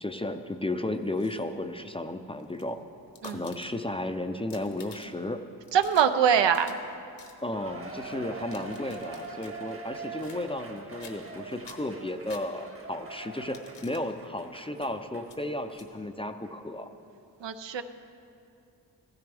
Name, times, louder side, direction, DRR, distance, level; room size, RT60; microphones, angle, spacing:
voice 1, 0.0-2.8 3.2-5.4 7.4-16.9, left 1 dB, 15° left, 7 dB, 0.5 m, -34 dB
sound 1, 0.9-1.6 2.4-4.0 4.3-5.3 5.6-6.9 7.2-7.4 8.3-9.6 10.2-10.7 11.0-11.4 11.6-12.9 13.4-14.1 14.7-14.9 15.2-15.4 15.7-15.9, left 5 dB, 75° left, 1.3 m, -52 dB
voice 2, 5.7-6.8 17.4-17.8, right 8 dB, 75° right, 9 dB, 0.7 m, -23 dB
Cheering, 7.5-15.3 15.7-15.8 16.4-16.5, right 4 dB, 30° right, 1.1 m, -43 dB
15.5 x 14.5 x 3.5 m, 2.5 s
wide cardioid pair, 95°, 43 cm